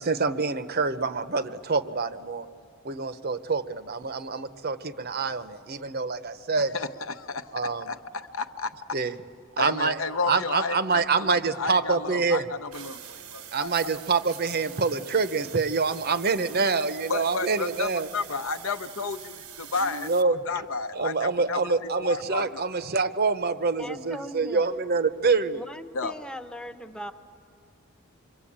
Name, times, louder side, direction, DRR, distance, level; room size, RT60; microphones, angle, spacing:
voice 1, 0.0-2.5 2.8-6.7 7.5-7.9 8.9-9.1 9.6-10.0 10.3-12.4 13.5-18.1 19.9-20.4 20.9-25.6, right 4 dB, 45° right, 12 dB, 0.8 m, -26 dB
voice 2, 6.7-9.0 9.6-13.9 17.1-22.6 25.9-26.1, left 4 dB, 65° left, 10 dB, 0.8 m, -32 dB
sound 1, 12.7-20.2, right 10 dB, 80° right, 1.1 m, -44 dB
voice 3, 23.8-24.7 25.5-27.1, equal, 5° left, 8 dB, 0.8 m, -39 dB
26.5 x 23.5 x 8.7 m, 2.3 s
head